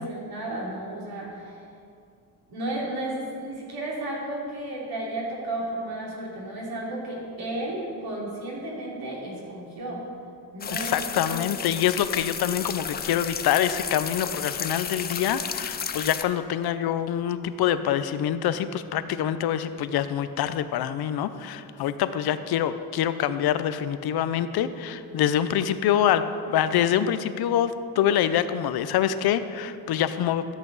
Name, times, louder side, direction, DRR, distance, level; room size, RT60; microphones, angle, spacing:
voice 1, 0.0-1.6 2.5-10.1 10.5-11.4, right 1 dB, 75° right, -4 dB, 3.0 m, -33 dB
sound 1, 10.6-16.2, left 7 dB, 30° left, 0.3 m, -33 dB
voice 2, 10.7-30.5, left 10 dB, 85° left, 12 dB, 0.6 m, -25 dB
13.5 x 8.2 x 4.0 m, 2.4 s
wide cardioid pair, 175°, 37 cm